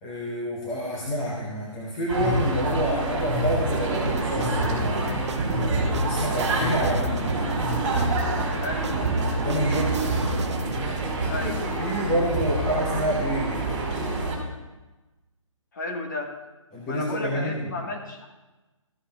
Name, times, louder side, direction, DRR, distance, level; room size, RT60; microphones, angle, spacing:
voice 1, 0.0-5.3 6.0-7.3 9.4-10.1 11.8-13.7 16.7-17.7, equal, 5° left, -5 dB, 0.6 m, -28 dB
sound 1, 2.1-14.4, right 1 dB, 15° right, 2.6 m, -27 dB
sound 2, 3.7-10.8, right 6 dB, 55° right, 0.4 m, -33 dB
voice 2, 8.6-9.0 11.3-11.7 15.7-16.3 16.9-18.3, left 2 dB, 35° left, 2 dB, 1.4 m, -33 dB
13.5 x 11.0 x 2.2 m, 1.1 s
hypercardioid pair, 170°, 17 cm